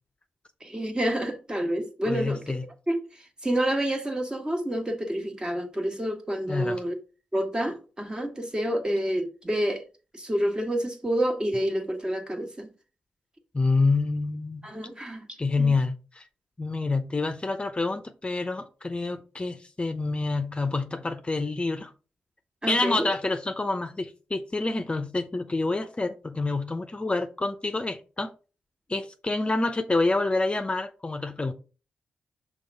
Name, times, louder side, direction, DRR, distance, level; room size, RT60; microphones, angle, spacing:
voice 1, 0.6-2.5 2.9-6.9 7.3-9.8 10.1-12.7 14.6-15.7 22.6-23.1, right 1 dB, 20° right, 1.6 m, -28 dB
voice 2, 2.0-2.6 6.5-6.8 13.5-14.7 15.4-16.2 16.6-21.9 22.7-28.3 28.9-31.5, left 3 dB, 30° left, 0.7 m, -27 dB
5.5 x 3.6 x 5.3 m
supercardioid pair, 45°, 4 cm